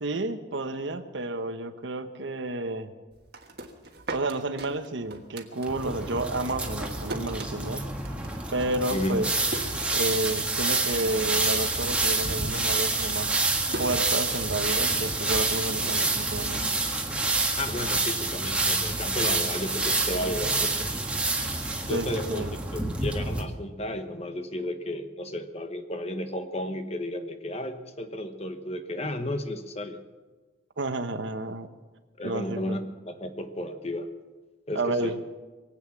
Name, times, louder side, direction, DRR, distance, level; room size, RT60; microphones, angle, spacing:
voice 1, 0.0-2.9 4.1-7.8 8.5-9.3 9.9-13.3 13.8-16.7 21.9-22.5 30.8-31.7 32.2-32.8 34.7-35.2, right 2 dB, 80° right, 9 dB, 1.1 m, -31 dB
sound 1, 3.1-6.1 6.3-10.5 10.8-11.4 11.7-17.9, right 1 dB, 60° right, 1.6 m, -42 dB
sound 2, 5.6-23.4, right 2 dB, 5° right, 1.6 m, -28 dB
voice 2, 8.9-9.2 17.6-21.0 21.9-22.5 22.7-30.0 32.2-34.1 34.7-35.2, left 1 dB, 35° left, 8 dB, 1.1 m, -33 dB
22.5 x 8.9 x 7.2 m, 1.3 s
head